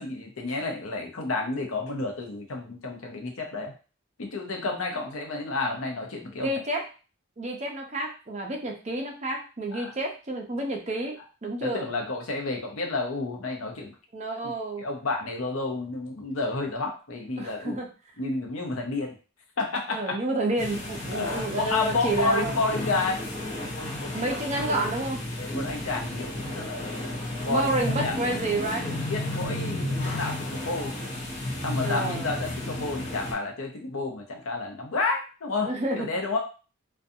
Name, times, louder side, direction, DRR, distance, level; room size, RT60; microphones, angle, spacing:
voice 1, 0.0-3.7 4.2-6.6 9.7-9.9 11.6-13.9 14.4-14.5 14.8-17.8 18.2-19.1 19.6-20.2 21.1-23.3 23.7-24.3 25.4-27.7 28.0-28.1 29.1-30.9 31.6-36.4, left 3 dB, 80° left, 2 dB, 0.7 m, -30 dB
voice 2, 6.4-6.9 7.4-11.9 14.1-14.9 17.4-17.9 19.9-22.5 24.1-25.2 27.5-28.9 31.8-32.3 35.6-36.1, right 2 dB, 35° right, 1 dB, 0.5 m, -30 dB
sound 1, 20.6-33.3, left 1 dB, 35° left, 0.7 m, -32 dB
2.5 x 2.3 x 2.6 m, 0.35 s
head